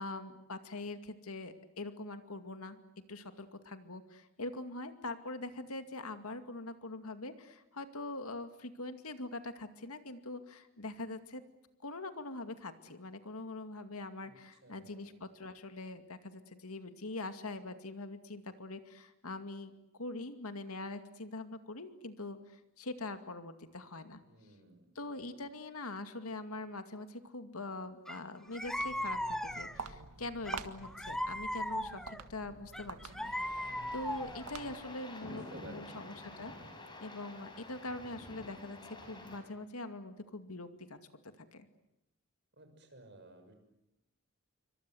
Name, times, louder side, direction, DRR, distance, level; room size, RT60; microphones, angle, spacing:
voice 1, 0.0-2.8 3.1-11.4 11.8-19.7 20.0-24.2 25.0-36.5 37.0-41.0 41.4-41.7, left 2 dB, 80° left, 8 dB, 2.3 m, -43 dB
voice 2, 14.6-15.0 24.2-24.8 35.5-35.9 42.6-43.5, right 2 dB, 50° right, 6 dB, 6.4 m, -54 dB
sound 1, 28.1-28.2 28.5-29.9 30.5-32.2 32.7-34.5, left 1 dB, ahead, 1.0 m, -38 dB
Walk footsteps, 28.5-35.0, right 4 dB, 90° right, 1.8 m, -48 dB
sound 2, 33.2-39.4, left 2 dB, 20° left, 5.3 m, -49 dB
27.5 x 24.5 x 7.9 m, 0.89 s
head